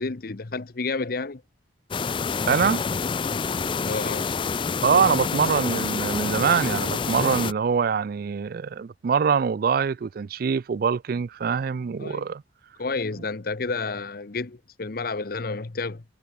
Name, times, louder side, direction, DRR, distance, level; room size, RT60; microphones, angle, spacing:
voice 1, 0.0-1.4 3.8-4.3 12.0-12.3 12.8-16.0, left 3 dB, 55° left, 0.8 m, -30 dB
sound 1, 1.9-7.5, left 5 dB, 30° left, 0.4 m, -27 dB
voice 2, 2.5-2.8 4.8-12.4, right 6 dB, 55° right, 0.4 m, -24 dB
head